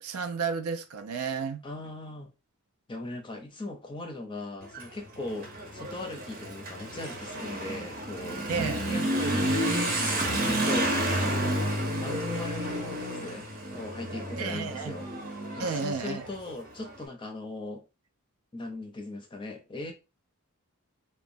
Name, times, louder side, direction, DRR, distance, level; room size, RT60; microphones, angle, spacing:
voice 1, 0.0-1.7 8.5-8.8 14.4-14.9 15.6-16.3, right 5 dB, 80° right, 0.4 m, -32 dB
voice 2, 1.6-2.3 2.9-9.5 10.0-11.5 12.0-15.1 15.6-17.9 18.5-19.9, left 2 dB, 20° left, 0.5 m, -39 dB
Motorcycle / Accelerating revving vroom, 4.6-16.9, right 1 dB, 40° right, 0.7 m, -31 dB
2.9 x 2.2 x 2.5 m
head